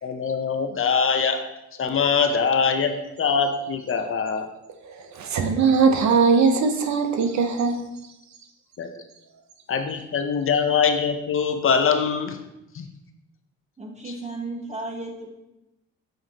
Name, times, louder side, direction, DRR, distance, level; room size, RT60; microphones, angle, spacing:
voice 1, 0.0-1.4 1.8-4.5 8.8-8.9 9.7-12.4 12.7-12.9, left 6 dB, 45° left, 6 dB, 0.7 m, -23 dB
voice 2, 4.8-7.9, right 5 dB, 65° right, 6 dB, 0.8 m, -20 dB
voice 3, 13.8-15.5, right 2 dB, 25° right, 1 dB, 1.5 m, -34 dB
7.6 x 5.8 x 2.9 m, 0.92 s
cardioid pair, 90°, 30 cm